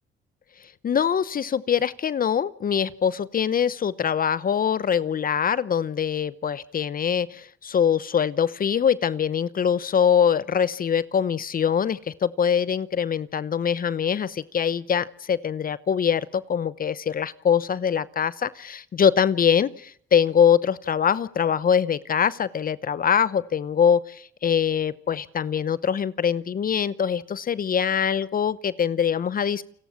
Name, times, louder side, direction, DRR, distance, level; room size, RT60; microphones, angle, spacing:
voice 1, 0.8-29.6, left 7 dB, 45° left, 18 dB, 0.9 m, -23 dB
29.5 x 17.5 x 7.4 m, 0.68 s
cardioid pair, 90°, 20 cm